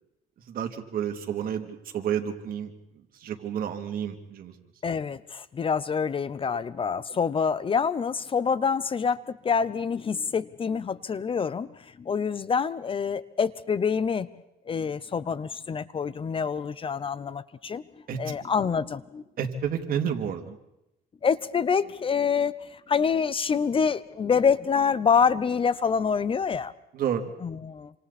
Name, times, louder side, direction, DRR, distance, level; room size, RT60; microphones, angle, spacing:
voice 1, 0.5-2.7 3.2-4.5 18.1-18.2 19.4-20.6 26.9-27.3, right 8 dB, 60° right, 4 dB, 2.9 m, -30 dB
voice 2, 4.8-14.3 14.7-17.8 18.2-19.2 21.2-26.7 27.4-27.9, left 6 dB, 30° left, 17 dB, 0.8 m, -26 dB
28.0 x 26.5 x 4.3 m, 0.89 s
cardioid pair, 110°, 17 cm